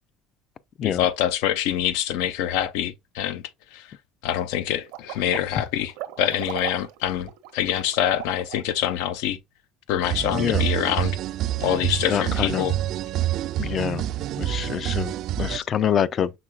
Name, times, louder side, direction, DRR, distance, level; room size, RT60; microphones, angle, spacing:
voice 1, 0.8-3.4 3.7-3.9 4.2-5.9 6.2-9.4 9.9-11.2 11.6-12.8, left 11 dB, 85° left, 0.6 m, -25 dB
sound 1, 4.9-8.7, right 14 dB, 85° right, 0.8 m, -37 dB
sound 2, 10.0-15.6, right 12 dB, 55° right, 0.3 m, -27 dB
voice 2, 10.3-10.6 12.1-12.6 13.6-14.1 14.4-16.4, left 9 dB, 35° left, 0.4 m, -26 dB
6.0 x 3.8 x 2.3 m
cardioid pair, 150°, 0 cm